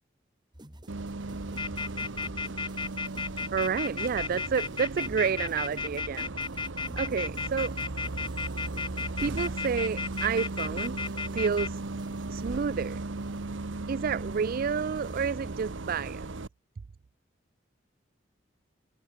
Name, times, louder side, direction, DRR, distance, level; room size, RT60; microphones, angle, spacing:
sound 1, 0.5-15.5, right 1 dB, 25° right, 2.9 m, -49 dB
Bus, 0.9-16.5, right 2 dB, 80° right, 1.0 m, -37 dB
sound 2, 1.6-11.7, left 5 dB, 25° left, 1.1 m, -33 dB
voice 1, 3.5-6.3 7.0-7.7 9.2-11.0 11.3-11.8 12.3-13.0 13.9-16.3, right 6 dB, 50° right, 0.4 m, -30 dB
head